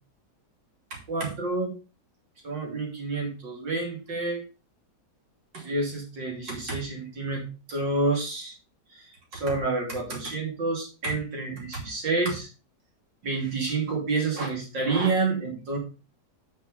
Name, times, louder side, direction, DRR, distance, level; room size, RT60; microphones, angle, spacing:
voice 1, 0.9-1.7 2.4-4.4 5.5-8.5 9.3-12.5 13.2-15.8, right 3 dB, 85° right, -1 dB, 3.6 m, -29 dB
8.4 x 5.6 x 5.3 m, 0.33 s
omnidirectional pair, 1.9 m